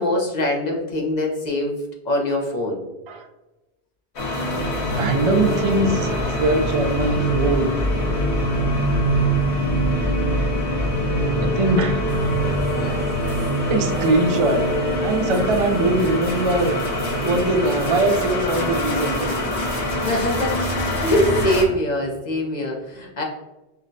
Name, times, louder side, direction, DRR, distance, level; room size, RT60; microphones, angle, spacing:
voice 1, 0.0-1.8 2.1-2.8 17.2-17.3 20.0-23.2, left 1 dB, 50° left, 0 dB, 0.6 m, -23 dB
sound 1, 4.2-21.6, equal, 85° left, 1.3 m, -23 dB
voice 2, 4.9-6.1 6.4-7.8 11.4-12.0 13.7-14.6 15.0-16.8 17.2-19.2, right 2 dB, 55° right, 4 dB, 0.3 m, -21 dB
sound 2, 12.1-20.5, right 2 dB, 75° right, 1.0 m, -35 dB
5.3 x 2.1 x 2.6 m, 1.0 s
omnidirectional pair, 1.1 m